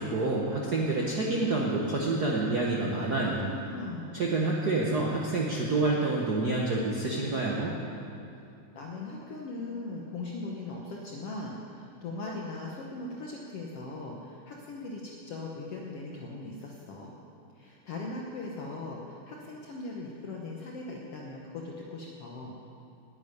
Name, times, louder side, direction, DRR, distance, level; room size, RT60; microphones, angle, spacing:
voice 1, 0.0-3.5 4.1-7.7, right 2 dB, 85° right, -3 dB, 0.8 m, -28 dB
voice 2, 3.2-4.2 8.8-17.1 17.6-22.5, left 2 dB, 60° left, -2 dB, 1.8 m, -39 dB
10.5 x 8.8 x 9.6 m, 2.6 s
omnidirectional pair, 3.6 m